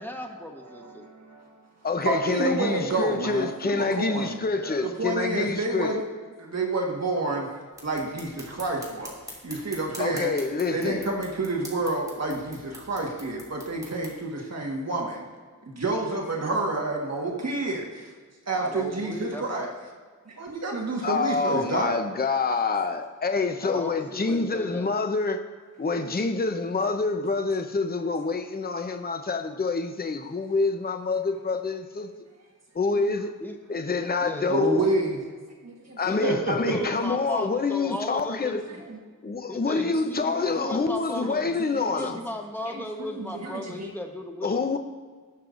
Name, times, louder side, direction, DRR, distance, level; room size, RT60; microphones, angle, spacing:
voice 1, 0.0-1.0 4.5-4.9 18.5-19.7 23.6-24.9 33.4-33.6 34.2-34.6 36.0-38.8 39.5-41.5 41.8-44.8, left 1 dB, 5° left, 3 dB, 1.2 m, -36 dB
voice 2, 0.7-1.5 2.0-4.4 4.8-6.0 6.4-7.5 7.8-9.1 9.4-10.3 10.7-15.2 15.7-18.1 18.5-19.7 20.3-21.9 34.5-35.2 35.6-36.9 38.7-39.0 40.4-40.8 41.7-41.8 42.1-42.2 42.7-43.9, right 2 dB, 50° right, -1 dB, 1.6 m, -29 dB
voice 3, 1.8-5.9 10.0-11.1 21.0-25.4 25.8-32.1 32.7-33.3 33.7-34.8 36.0-38.6 39.2-42.2 44.4-44.8, left 4 dB, 30° left, 6 dB, 0.7 m, -27 dB
sound 1, 7.7-14.1, equal, 10° right, 2.8 m, -45 dB
19.0 x 6.7 x 2.6 m, 1.5 s
wide cardioid pair, 90°, 33 cm